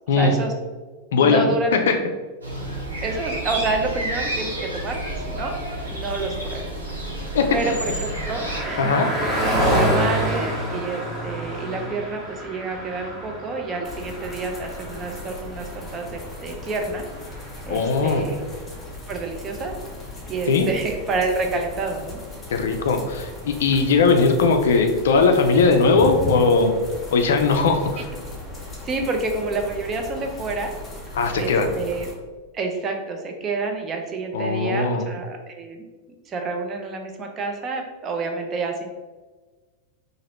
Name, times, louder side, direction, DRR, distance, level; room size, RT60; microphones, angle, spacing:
voice 1, 0.2-0.5 1.2-1.9 3.0-5.6 5.9-6.6 7.5-9.0 9.4-17.0 17.7-18.5 19.1-19.7 20.3-22.2 28.8-30.7 31.4-32.1 32.5-35.8 36.3-38.9, right 3 dB, 25° right, 3 dB, 0.5 m, -28 dB
voice 2, 1.1-1.9 7.3-7.6 8.8-9.1 17.7-18.3 20.5-20.7 22.5-26.7 27.1-28.1 31.2-31.7 34.3-35.1, left 4 dB, 60° left, 5 dB, 0.3 m, -19 dB
sound 1, 2.4-8.6, right 1 dB, 80° right, 0.8 m, -30 dB
Car passing by, 6.6-18.3, equal, 10° right, 0.9 m, -28 dB
sound 2, 13.8-32.1, left 2 dB, 15° left, 0.7 m, -37 dB
2.8 x 2.5 x 2.9 m, 1.3 s
figure-of-eight pair, 90°, 0 cm